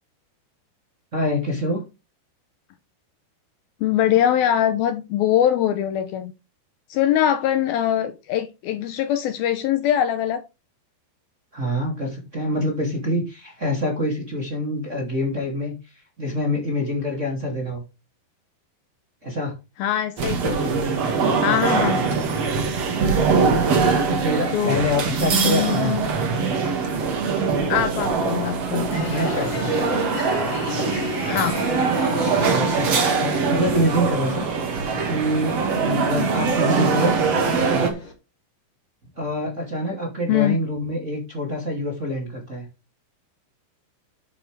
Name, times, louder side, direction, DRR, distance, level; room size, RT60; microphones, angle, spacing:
voice 1, 1.1-1.8 11.5-15.7 16.2-17.8 19.2-19.5 21.4-21.6 23.1-23.6 24.1-26.0 29.1-29.7 32.5-34.5 35.0-37.2 37.7-38.0 39.2-42.6, equal, 20° right, 2.2 m, -26 dB
voice 2, 3.8-6.3 6.9-10.4 19.8-20.7 21.4-22.0 24.5-24.8 25.3-26.0 27.7-28.9 31.2-31.6 40.3-40.6, left 10 dB, 75° left, 2.4 m, -22 dB
sound 1, 20.2-37.9, right 5 dB, 45° right, 2.5 m, -22 dB
sound 2, 28.9-38.1, left 4 dB, 35° left, 2.6 m, -34 dB
9.9 x 7.7 x 3.4 m
omnidirectional pair, 4.8 m